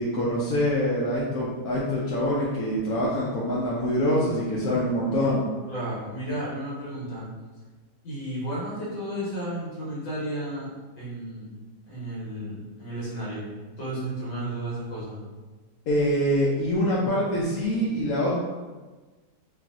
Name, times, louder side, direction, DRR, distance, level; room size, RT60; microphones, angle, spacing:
voice 1, 0.0-5.4 15.9-18.3, equal, 70° left, -6 dB, 0.9 m, -25 dB
voice 2, 5.7-7.3 8.0-10.7 11.0-11.5 11.9-13.4 13.8-15.2, right 1 dB, 85° left, -7 dB, 1.7 m, -33 dB
3.3 x 2.5 x 2.4 m, 1.3 s
omnidirectional pair, 1.9 m